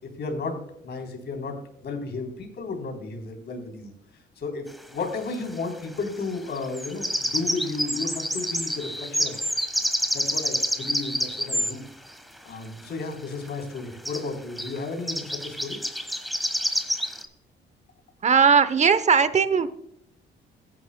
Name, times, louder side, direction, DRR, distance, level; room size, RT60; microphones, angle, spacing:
voice 1, 0.2-0.6 0.8-3.9 4.4-9.4 10.1-11.8 12.5-15.8, left 3 dB, 60° left, 3 dB, 3.6 m, -33 dB
sound 1, 4.7-4.8 6.6-11.8 13.5-13.6 13.8-13.9 14.1-14.3 14.6-14.8 15.1-17.3, equal, ahead, 1.3 m, -28 dB
voice 2, 18.2-19.7, right 6 dB, 35° right, 14 dB, 0.9 m, -18 dB
14.5 x 10.5 x 2.2 m, 0.73 s
cardioid pair, 90°, 20 cm